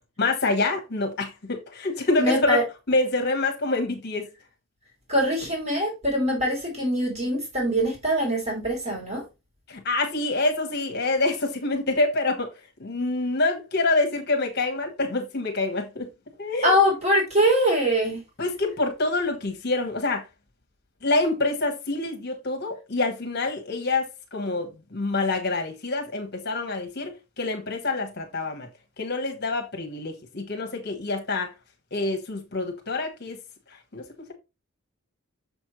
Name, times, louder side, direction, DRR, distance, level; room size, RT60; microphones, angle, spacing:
voice 1, 0.2-2.6 2.9-4.3 9.7-12.5 12.8-16.1 16.4-16.7 18.4-20.2 21.0-28.7 29.0-31.5 31.9-33.4 33.9-34.3, left 2 dB, 50° left, 1.2 m, -26 dB
voice 2, 2.2-2.6 5.1-9.2 16.6-18.2, equal, 30° right, 2.9 m, -23 dB
6.8 x 5.2 x 3.1 m
head